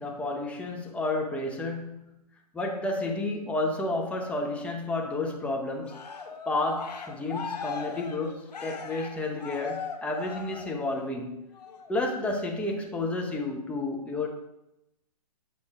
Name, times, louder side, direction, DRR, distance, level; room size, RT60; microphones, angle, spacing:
voice 1, 0.0-2.1 2.5-6.0 6.5-11.4 11.9-14.3, left 2 dB, 5° left, 1 dB, 0.9 m, -31 dB
Cheering, 5.8-11.1 11.5-11.9, left 5 dB, 80° left, 1.2 m, -39 dB
7.8 x 3.7 x 4.9 m, 0.87 s
hypercardioid pair, 135°, 21 cm